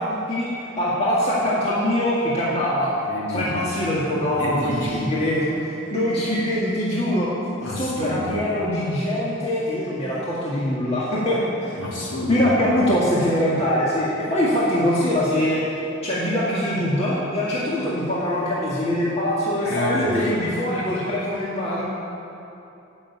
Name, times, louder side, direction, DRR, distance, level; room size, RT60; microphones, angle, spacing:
voice 1, 0.0-2.9 3.3-7.3 7.7-11.7 12.3-15.7 16.0-21.8, left 1 dB, 30° left, -8 dB, 2.0 m, -23 dB
voice 2, 3.1-3.7 4.2-5.1 7.6-8.4 11.8-12.9 19.6-20.3 20.7-21.0, left 1 dB, 60° left, -6 dB, 3.5 m, -29 dB
14.0 x 6.4 x 8.5 m, 2.8 s
head